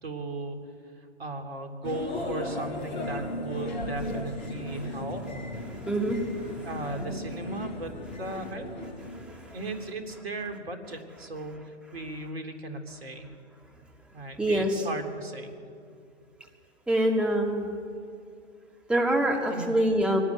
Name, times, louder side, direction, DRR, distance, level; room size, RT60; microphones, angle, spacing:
voice 1, 0.0-0.6 1.2-5.4 6.6-7.9 8.2-8.9 9.5-11.6 11.9-13.3 14.1-15.5 19.5-19.7, right 2 dB, 55° right, 6 dB, 3.6 m, -36 dB
sound 1, 1.8-10.1, left 1 dB, 40° left, 4.9 m, -36 dB
voice 2, 5.8-6.9 8.3-8.5 9.3-10.6 11.2-11.4 14.4-14.9 16.9-17.7 18.9-20.2, right 1 dB, 5° right, 0 dB, 2.4 m, -27 dB
23.0 x 18.0 x 9.5 m, 2.4 s
figure-of-eight pair, 130°, 36 cm